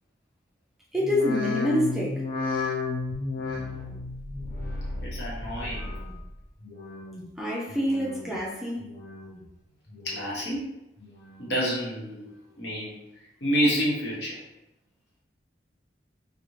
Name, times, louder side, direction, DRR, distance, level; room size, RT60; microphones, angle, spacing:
sound 1, 0.9-6.3 6.6-7.2 7.7-8.4 8.8-9.4 9.9-10.5 11.0-11.6 12.1-12.2, left 3 dB, 50° left, 0.6 m, -34 dB
voice 1, 0.9-2.2 7.4-8.8, left 1 dB, ahead, -5 dB, 0.4 m, -26 dB
voice 2, 5.0-6.1 10.0-10.7 11.4-12.3 12.6-13.0 13.4-14.4, equal, 75° left, -5 dB, 0.9 m, -28 dB
2.5 x 2.0 x 3.0 m, 0.86 s
head